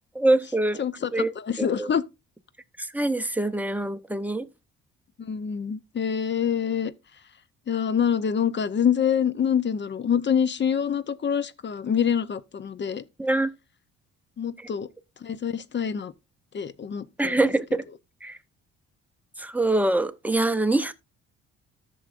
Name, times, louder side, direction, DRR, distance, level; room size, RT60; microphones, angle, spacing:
voice 1, 0.2-0.8 1.1-1.9 2.8-4.5 13.2-13.5 17.2-17.8 18.2-18.4 19.4-20.9, right 2 dB, 5° right, 0.7 m, -24 dB
voice 2, 0.8-2.0 5.2-6.9 7.7-13.0 14.4-14.9 15.2-16.1 16.5-17.4, left 8 dB, 35° left, 0.6 m, -26 dB
14.0 x 6.3 x 2.5 m
cardioid pair, 90°, 30 cm